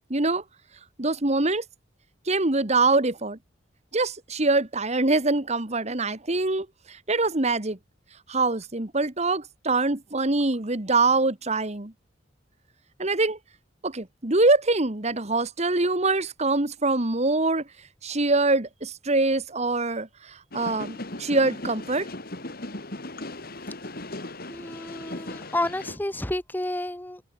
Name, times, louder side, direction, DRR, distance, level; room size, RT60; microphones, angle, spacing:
voice 1, 0.1-0.4 1.0-1.6 2.3-3.4 3.9-7.8 8.3-11.9 13.0-13.4 13.8-17.6 18.0-22.1, right 3 dB, 35° right, 1.8 m, -24 dB
sound 1, 20.5-26.0, left 2 dB, 55° left, 3.6 m, -37 dB
voice 2, 24.5-27.2, left 1 dB, 10° left, 1.2 m, -30 dB
head